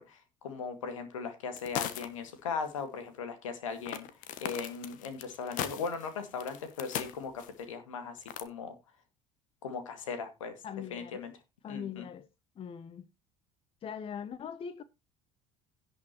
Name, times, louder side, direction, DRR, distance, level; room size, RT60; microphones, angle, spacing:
voice 1, 0.0-4.1 4.4-8.8 9.6-10.6 10.9-11.3 11.7-12.0, left 5 dB, 70° left, 2.1 m, -38 dB
sound 1, 1.6-2.3 2.6-2.7 3.9-7.6 8.2-8.4, left 10 dB, 50° left, 1.3 m, -38 dB
voice 2, 10.6-11.3 11.6-12.3 12.6-13.1 13.8-14.8, left 8 dB, 35° left, 0.8 m, -41 dB
17.0 x 6.3 x 3.0 m
figure-of-eight pair, 60°, 17 cm